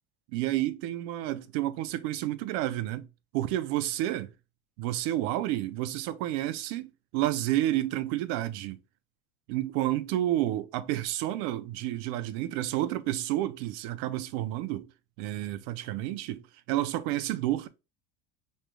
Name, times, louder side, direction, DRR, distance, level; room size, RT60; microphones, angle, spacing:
voice 1, 0.3-3.1 3.3-4.3 4.8-8.8 9.5-14.9 15.2-17.7, right 14 dB, 65° right, 0.5 m, -30 dB
4.8 x 3.2 x 2.2 m
cardioid pair, 155°, 29 cm